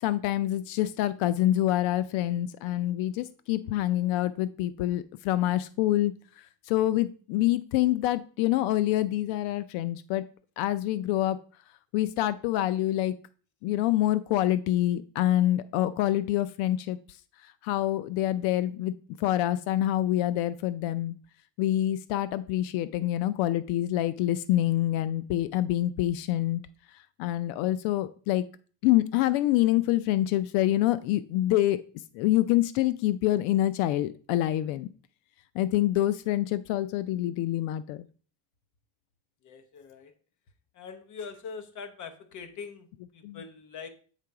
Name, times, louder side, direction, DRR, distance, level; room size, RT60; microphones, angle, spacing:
voice 1, 0.0-10.2 10.6-11.4 11.9-13.1 13.6-17.0 17.6-21.1 21.6-26.6 27.2-28.5 28.8-31.8 32.1-34.9 35.5-38.0 43.2-43.4, left 14 dB, 85° left, 15 dB, 0.6 m, -26 dB
voice 2, 39.4-40.1 40.7-43.9, left 5 dB, 40° left, 8 dB, 1.0 m, -43 dB
8.3 x 3.7 x 4.7 m, 0.42 s
cardioid pair, 150°, 47 cm